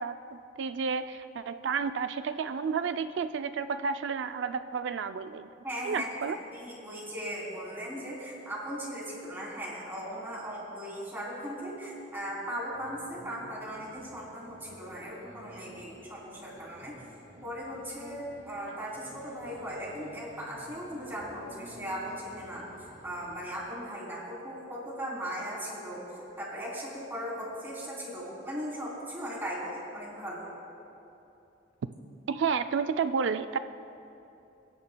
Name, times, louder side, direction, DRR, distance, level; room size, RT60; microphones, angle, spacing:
voice 1, 0.0-5.5 5.8-6.4 32.3-33.6, right 5 dB, 75° right, 10 dB, 0.4 m, -31 dB
voice 2, 5.6-16.9 17.4-22.6 23.0-30.5, equal, 10° right, -6 dB, 3.2 m, -38 dB
sound 1, 12.7-23.6, equal, 50° right, 1.4 m, -52 dB
26.0 x 10.0 x 2.3 m, 2.8 s
head